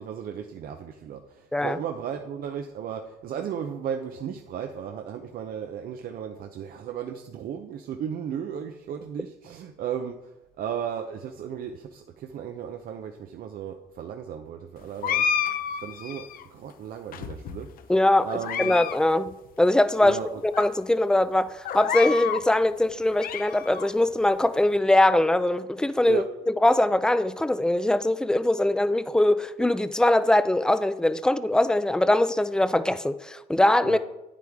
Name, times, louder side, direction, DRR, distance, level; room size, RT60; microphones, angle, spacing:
voice 1, 0.0-10.2 10.6-15.3 15.7-17.7 18.2-18.7 20.0-20.4 26.1-26.3 33.8-34.0, right 8 dB, 60° right, 5 dB, 0.7 m, -35 dB
sound 1, 15.0-16.4 17.1-17.8 18.3-19.0 19.3-19.4 20.1-20.2 20.5-20.7 21.6-22.5 22.9-23.9, left 8 dB, 60° left, 0.7 m, -29 dB
voice 2, 17.9-18.3 18.6-26.2 26.6-34.0, left 1 dB, 5° left, 13 dB, 0.4 m, -22 dB
9.6 x 8.4 x 3.6 m, 0.96 s
cardioid pair, 110°, 17 cm